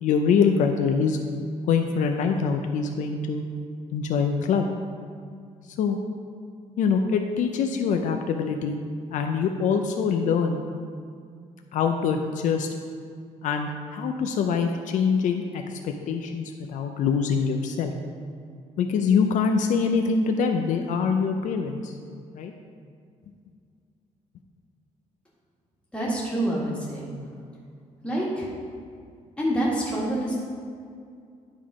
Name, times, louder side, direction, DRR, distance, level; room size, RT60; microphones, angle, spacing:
voice 1, 0.0-1.2 1.7-3.4 3.9-4.7 5.8-6.0 6.8-8.8 9.1-10.6 11.7-12.7 13.4-17.9 18.8-22.0 22.3-22.5, left 6 dB, 75° left, 5 dB, 0.5 m, -24 dB
voice 2, 25.9-27.1 28.0-28.5 29.4-30.4, right 1 dB, 10° left, -6 dB, 1.8 m, -26 dB
10.5 x 3.7 x 4.8 m, 2.2 s
cardioid pair, 165°, 13 cm